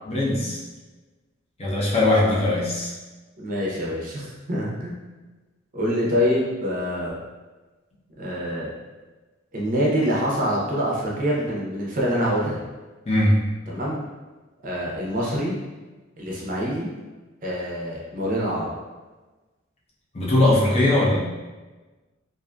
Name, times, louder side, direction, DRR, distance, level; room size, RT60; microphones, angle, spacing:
voice 1, 0.1-0.6 1.6-2.9 13.1-13.5 20.1-21.2, left 1 dB, 30° left, -6 dB, 0.5 m, -20 dB
voice 2, 3.4-5.0 5.7-7.2 8.2-8.7 9.5-12.6 13.7-14.0 14.6-15.6 16.2-16.9 17.4-18.7, equal, 40° right, -4 dB, 0.6 m, -25 dB
2.5 x 2.4 x 2.2 m, 1.2 s
head